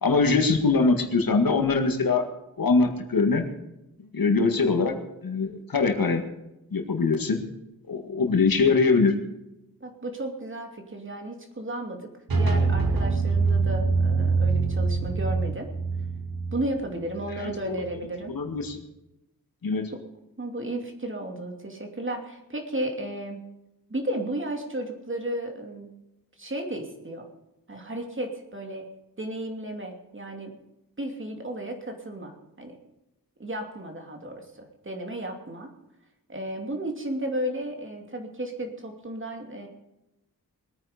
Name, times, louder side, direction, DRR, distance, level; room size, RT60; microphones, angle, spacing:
voice 1, 0.0-2.2 2.6-3.5 4.1-6.2 6.7-7.4 7.9-9.1 17.4-17.8 18.3-18.8 19.6-19.9, left 4 dB, 75° left, 6 dB, 2.0 m, -23 dB
voice 2, 9.8-12.1 12.4-15.7 16.5-18.4 20.4-23.5 23.9-25.9 26.4-27.3 27.7-28.9 29.2-30.6 31.0-32.8 33.4-35.7 36.3-39.7, right 1 dB, 35° right, 3 dB, 2.7 m, -33 dB
sound 1, 12.3-18.0, right 4 dB, 85° right, 2.4 m, -25 dB
21.0 x 9.5 x 5.1 m, 0.93 s
wide cardioid pair, 110°, 35 cm